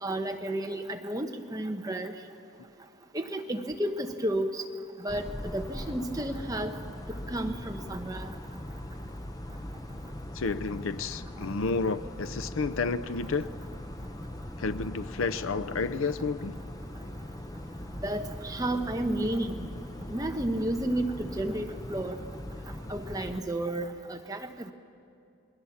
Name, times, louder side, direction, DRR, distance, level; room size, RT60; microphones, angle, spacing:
voice 1, 0.0-2.1 3.1-4.6 5.0-6.8 7.3-8.3 18.0-19.6 20.1-22.2 22.9-24.5, right 1 dB, 15° right, 1.0 m, -32 dB
sound 1, 5.1-23.4, left 1 dB, 20° left, 0.7 m, -40 dB
voice 2, 10.3-13.5 14.6-16.6, left 4 dB, 80° left, 0.6 m, -31 dB
28.0 x 21.0 x 7.2 m
head